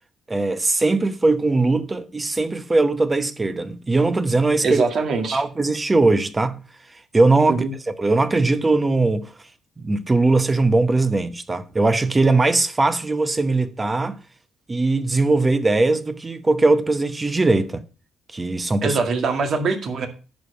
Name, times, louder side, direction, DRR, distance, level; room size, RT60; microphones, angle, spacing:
voice 1, 0.3-4.8 5.3-6.6 7.1-7.7 8.0-9.3 9.8-14.2 14.7-17.8 18.3-19.0, right 3 dB, 20° right, 0.9 m, -20 dB
voice 2, 4.6-5.4 7.5-7.7 18.8-20.1, right 4 dB, 55° right, 2.1 m, -22 dB
10.5 x 5.0 x 6.5 m
cardioid pair, 105°, 0 cm